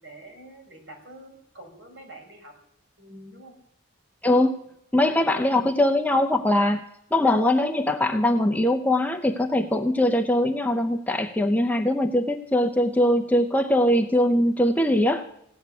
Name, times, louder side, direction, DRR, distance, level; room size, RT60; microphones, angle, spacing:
voice 1, 0.0-2.6 3.0-3.6, right 1 dB, 55° right, 2 dB, 4.6 m, -46 dB
voice 2, 4.2-4.6 4.9-6.8 7.1-15.3, left 1 dB, 10° left, 4 dB, 0.6 m, -21 dB
16.0 x 7.9 x 9.6 m, 0.76 s
head